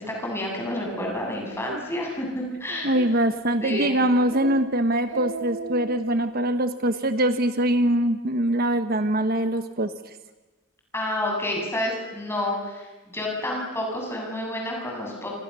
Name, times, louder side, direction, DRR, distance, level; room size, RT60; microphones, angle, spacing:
voice 1, 0.2-2.9 3.6-4.0 10.9-15.3, left 1 dB, 10° left, -1 dB, 7.6 m, -29 dB
Speech, 0.9-1.1 1.5-1.8 2.2-2.3 2.7-3.3 3.7-3.9 4.2-4.6 4.9-6.0, right 3 dB, 65° right, 2.0 m, -36 dB
voice 2, 2.8-10.1, right 1 dB, 45° right, 9 dB, 1.1 m, -23 dB
29.5 x 28.0 x 6.9 m, 1.2 s
head